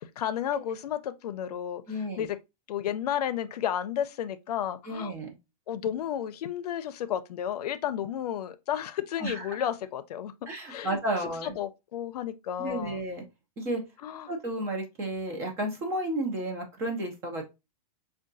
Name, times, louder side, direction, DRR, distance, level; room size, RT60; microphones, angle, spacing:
voice 1, 0.0-1.8 2.2-2.4 2.7-5.1 5.7-10.3 10.7-11.0 11.4-13.0 14.0-14.3, left 10 dB, 90° left, 0.5 m, -32 dB
voice 2, 1.9-2.3 4.9-5.4 9.2-9.6 10.5-11.5 12.6-13.2 13.6-13.8 14.3-17.4, right 1 dB, 15° right, 0.4 m, -32 dB
4.6 x 2.2 x 2.5 m
supercardioid pair, 170°, 19 cm